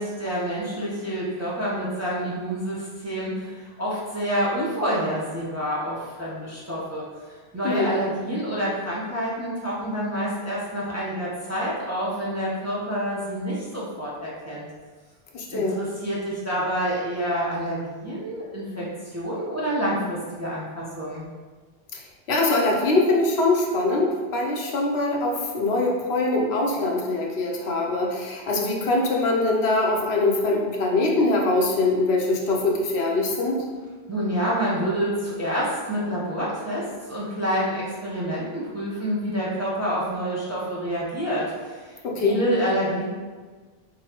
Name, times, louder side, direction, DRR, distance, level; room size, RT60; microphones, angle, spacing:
voice 1, 0.0-7.0 7.5-14.7 15.5-21.2 34.1-43.0, equal, 15° right, -7 dB, 0.7 m, -28 dB
voice 2, 15.3-15.8 21.9-22.0 22.3-33.6 42.0-42.4, left 2 dB, 70° left, -1 dB, 0.9 m, -23 dB
3.8 x 3.7 x 2.9 m, 1.5 s
omnidirectional pair, 1.1 m